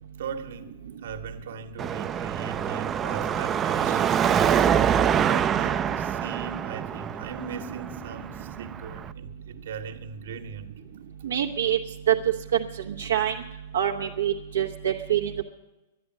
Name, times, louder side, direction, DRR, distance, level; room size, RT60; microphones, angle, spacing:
voice 1, 0.0-5.0 5.3-10.8, right 5 dB, 70° right, 1.5 m, -39 dB
Car passing by / Traffic noise roadway noise / Engine, 1.8-9.1, right 8 dB, 20° right, 0.4 m, -25 dB
voice 2, 11.2-11.8 12.1-12.2 13.0-13.3 13.7-15.4, right 10 dB, 85° right, 1.0 m, -25 dB
11.0 x 10.5 x 9.2 m
hypercardioid pair, 145°, 0 cm